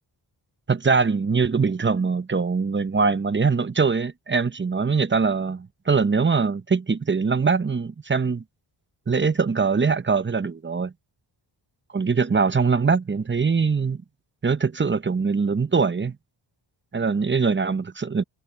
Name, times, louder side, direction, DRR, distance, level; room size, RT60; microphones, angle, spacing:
voice 1, 0.7-8.4 9.1-10.9 11.9-14.0 14.4-16.2 16.9-18.2, right 5 dB, 25° right, 0.7 m, -22 dB
wide cardioid pair, 95°, 47 cm